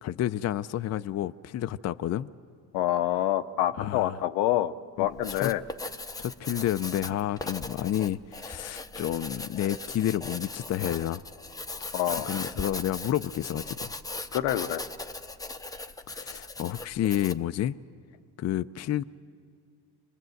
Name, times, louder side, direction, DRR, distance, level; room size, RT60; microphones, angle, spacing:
voice 1, 0.0-2.3 3.7-4.2 5.0-5.5 6.2-11.2 12.2-13.9 16.1-17.8 18.4-19.0, left 12 dB, 40° left, 0.5 m, -30 dB
voice 2, 2.7-5.6 11.9-12.3 14.3-14.8, left 13 dB, 80° left, 0.8 m, -27 dB
Writing, 5.0-17.5, left 2 dB, 10° left, 0.7 m, -39 dB
26.0 x 20.0 x 7.8 m
supercardioid pair, 85°, 40 cm